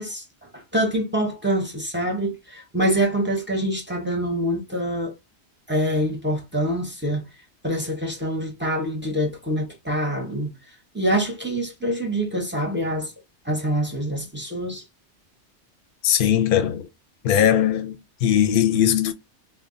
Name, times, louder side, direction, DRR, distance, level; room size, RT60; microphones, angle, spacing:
voice 1, 0.0-5.1 5.7-7.2 7.6-10.5 10.9-13.1 13.4-14.8, right 1 dB, 15° right, 0.5 m, -25 dB
voice 2, 16.0-16.9 17.2-19.1, left 10 dB, 60° left, 0.6 m, -20 dB
2.3 x 2.1 x 3.5 m
omnidirectional pair, 1.2 m